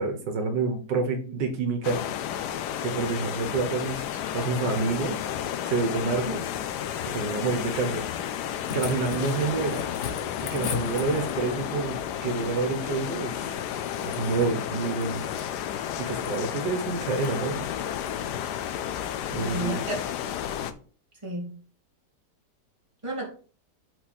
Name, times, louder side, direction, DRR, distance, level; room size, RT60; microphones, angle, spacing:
voice 1, 0.0-2.0 2.8-5.2 5.7-6.4 7.0-8.0 8.7-9.8 10.4-13.6 14.1-15.3 16.0-17.7 19.3-19.8, right 4 dB, 80° right, 1.9 m, -28 dB
sound 1, 1.8-20.7, left 10 dB, 75° left, 1.2 m, -32 dB
voice 2, 6.0-6.4 19.4-20.0 21.2-21.5 23.0-23.3, right 1 dB, 15° right, 2.3 m, -32 dB
sound 2, 8.3-11.6 13.5-14.5 14.9-15.5 16.0-16.5 17.1-17.4 17.9-18.2 19.5-19.6, left 6 dB, 50° left, 1.0 m, -38 dB
7.9 x 4.3 x 4.2 m
omnidirectional pair, 1.9 m